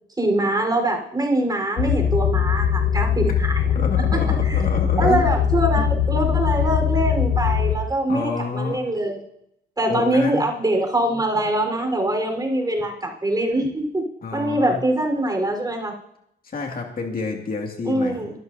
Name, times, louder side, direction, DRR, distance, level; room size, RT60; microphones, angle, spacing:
voice 1, 0.2-3.6 5.0-9.2 9.8-14.0 14.3-15.9 17.8-18.3, right 1 dB, 20° right, 2 dB, 4.3 m, -23 dB
sound 1, 1.8-7.8, left 8 dB, 90° left, 1.4 m, -21 dB
voice 2, 3.7-5.3 5.8-5.9 8.1-8.8 9.9-10.5 11.3-11.5 14.2-14.8 16.4-18.3, left 4 dB, 45° left, 1 dB, 2.4 m, -29 dB
25.0 x 13.0 x 2.8 m, 0.79 s
cardioid pair, 90°, 20 cm